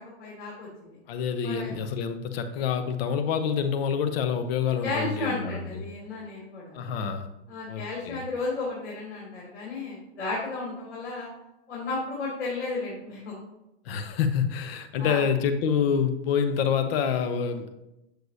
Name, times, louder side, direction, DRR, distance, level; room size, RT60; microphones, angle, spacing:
voice 1, 0.0-1.0 1.4-1.7 4.8-6.9 7.5-11.3 11.7-13.4 14.9-15.2, left 3 dB, 85° left, -5 dB, 2.7 m, -33 dB
voice 2, 1.1-5.8 6.7-7.3 7.7-8.2 13.8-17.7, left 7 dB, 60° left, 7 dB, 1.0 m, -27 dB
8.0 x 6.5 x 2.7 m, 0.92 s
hypercardioid pair, 120°, 34 cm